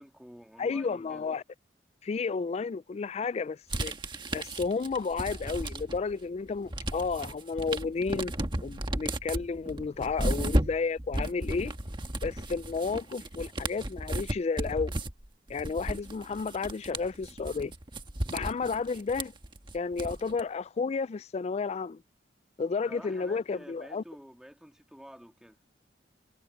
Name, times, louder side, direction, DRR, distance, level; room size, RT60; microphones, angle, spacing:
voice 1, 0.0-1.3 22.9-25.6, equal, 5° right, 2.2 m, -49 dB
voice 2, 0.6-1.4 2.0-3.9 4.3-8.3 8.6-11.7 12.2-14.9 15.5-17.7 18.3-19.3 19.7-22.0 22.6-24.0, left 4 dB, 35° left, 0.3 m, -32 dB
sound 1, 3.7-6.1 6.5-20.4, right 1 dB, 25° right, 1.5 m, -34 dB
head